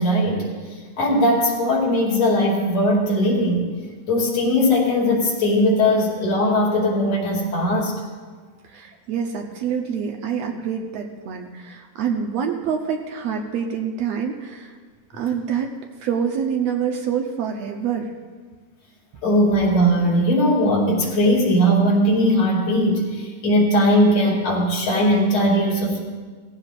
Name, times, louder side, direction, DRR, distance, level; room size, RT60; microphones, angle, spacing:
voice 1, 0.0-3.7 4.1-7.9 19.2-26.0, equal, 65° left, -3 dB, 3.6 m, -19 dB
voice 2, 8.6-14.8 15.1-15.7 16.0-18.1, right 7 dB, 70° right, 3 dB, 1.8 m, -26 dB
18.5 x 15.0 x 2.5 m, 1.5 s
omnidirectional pair, 3.3 m